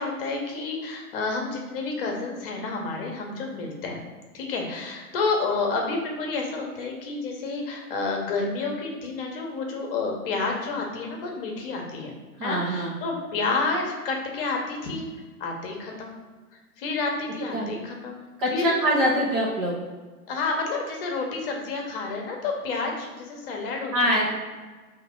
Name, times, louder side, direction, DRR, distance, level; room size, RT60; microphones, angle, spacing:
voice 1, 0.0-4.0 4.3-12.1 12.4-15.1 15.4-16.2 16.8-18.2 18.5-19.1 20.3-24.3, left 3 dB, 40° left, 1 dB, 1.0 m, -30 dB
voice 2, 12.4-13.0 17.5-17.7 18.4-19.8 23.9-24.3, equal, 25° right, -3 dB, 0.6 m, -24 dB
4.6 x 3.0 x 3.7 m, 1.3 s
hypercardioid pair, 145°, 45 cm